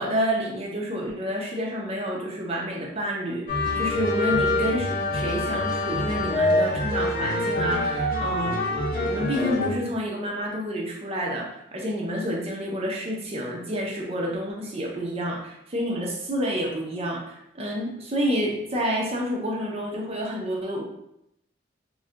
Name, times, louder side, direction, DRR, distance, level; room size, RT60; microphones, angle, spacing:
voice 1, 0.0-8.6 8.9-20.8, equal, 30° right, -1 dB, 0.5 m, -29 dB
sound 1, 3.5-9.7, left 1 dB, 45° left, 0.7 m, -25 dB
2.3 x 2.2 x 3.7 m, 0.80 s
head